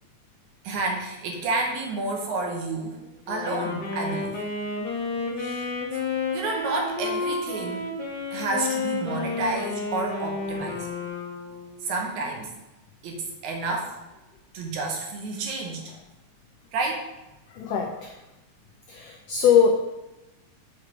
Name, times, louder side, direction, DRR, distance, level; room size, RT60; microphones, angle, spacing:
voice 1, 0.6-3.0 3.3-4.4 5.4-5.7 6.3-7.9 8.3-10.9 11.8-12.5 13.0-13.9 14.5-15.8 16.7-17.0, right 3 dB, 75° right, 1 dB, 2.3 m, -30 dB
Wind instrument woodwind instrument, 3.3-11.9, left 3 dB, 45° left, 0.9 m, -31 dB
voice 2, 17.5-18.1 18.9-19.7, left 7 dB, 90° left, 2 dB, 1.4 m, -21 dB
5.8 x 4.9 x 4.5 m, 1.0 s
omnidirectional pair, 3.5 m